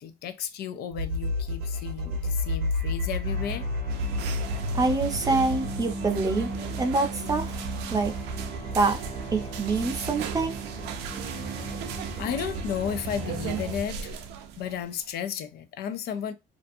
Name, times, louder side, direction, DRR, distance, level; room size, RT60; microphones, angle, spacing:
voice 1, 0.0-3.7 12.2-14.3 14.6-16.3, left 9 dB, 70° left, 0.4 m, -33 dB
sound 1, 0.9-13.8, left 1 dB, 65° right, 0.8 m, -33 dB
sound 2, 3.2-14.0, left 1 dB, 35° left, 1.4 m, -40 dB
sound 3, 3.9-15.0, right 8 dB, 90° right, 0.4 m, -38 dB
voice 2, 4.7-6.5 6.8-7.6 7.9-8.1 8.7-9.0 9.3-10.5, right 3 dB, 20° right, 0.5 m, -25 dB
2.5 x 2.3 x 2.5 m
cardioid pair, 110°, 17 cm